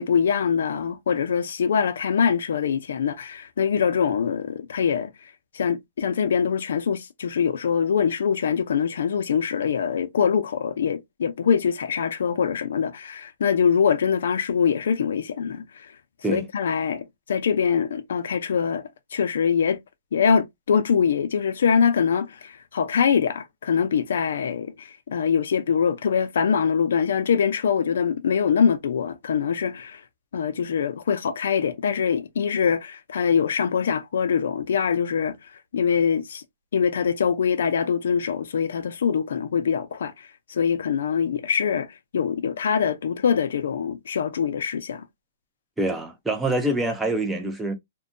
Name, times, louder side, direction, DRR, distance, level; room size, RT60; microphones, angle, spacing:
voice 1, 0.0-5.1 5.5-15.9 16.3-18.8 19.1-19.8 20.1-30.0 30.3-35.4 35.7-36.4 36.7-45.0, left 7 dB, 70° left, 0.5 m, -23 dB
voice 2, 45.8-47.8, right 1 dB, 5° right, 0.4 m, -25 dB
2.6 x 2.2 x 2.5 m
hypercardioid pair, 165°, 0 cm